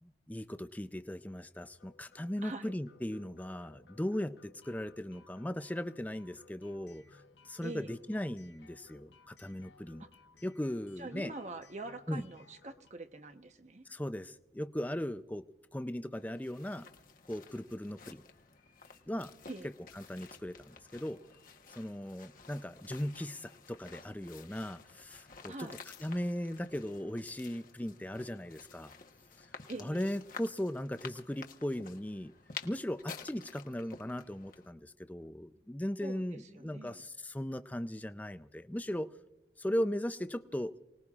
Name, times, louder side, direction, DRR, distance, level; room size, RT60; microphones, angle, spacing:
voice 1, 0.0-10.0 10.4-11.3 12.1-12.2 13.9-15.5 15.7-16.9 17.3-18.2 19.1-19.3 20.0-21.2 21.8-25.7 26.0-28.9 29.4-29.5 29.8-32.3 32.6-39.1 39.6-40.7, left 1 dB, 10° left, 11 dB, 0.5 m, -38 dB
sound 1, 1.8-12.9, left 4 dB, 75° left, 0.8 m, -62 dB
voice 2, 2.4-2.7 7.6-7.9 10.0-10.1 11.0-13.8 19.5-19.7 25.5-25.8 29.7-30.1 36.0-36.2 36.5-37.0, right 2 dB, 40° right, 7 dB, 1.0 m, -44 dB
sound 2, 16.1-34.7, left 6 dB, 50° left, 1.1 m, -52 dB
29.0 x 19.5 x 2.4 m, 1.1 s
head